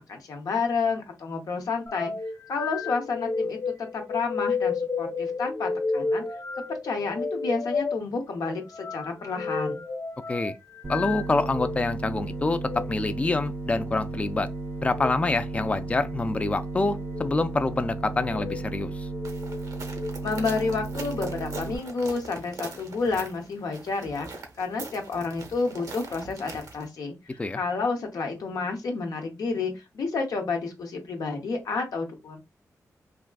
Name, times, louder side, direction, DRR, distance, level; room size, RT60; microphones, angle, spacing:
voice 1, 0.0-2.1 2.5-6.2 6.7-9.8 20.2-32.4, left 4 dB, 80° left, 0.8 m, -30 dB
sound 1, 1.9-11.8 12.6-12.8 14.8-15.2 16.0-16.5 17.0-17.3 18.1-18.6 19.1-20.1, left 4 dB, 45° left, 0.7 m, -32 dB
sound 2, 10.8-21.8, right 2 dB, 45° right, 0.6 m, -34 dB
voice 2, 10.9-14.5 14.8-19.1 27.4-27.6, left 3 dB, 20° left, 0.3 m, -26 dB
sound 3, 19.2-26.9, right 3 dB, 80° right, 0.8 m, -42 dB
3.5 x 2.4 x 2.3 m
cardioid pair, 65°, 6 cm